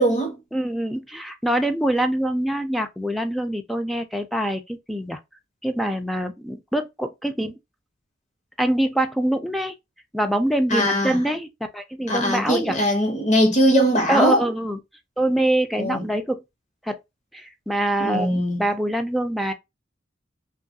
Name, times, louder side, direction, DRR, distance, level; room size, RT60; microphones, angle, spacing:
voice 1, 0.0-0.3 10.7-11.2 12.1-14.4 15.8-16.1 18.0-18.7, equal, 40° left, 0.9 m, -20 dB
voice 2, 0.5-5.2 5.6-7.6 8.6-9.7 10.1-12.8 14.1-14.8 15.2-16.4 16.8-17.0 17.3-19.5, right 1 dB, ahead, 0.3 m, -24 dB
2.9 x 2.3 x 2.6 m
head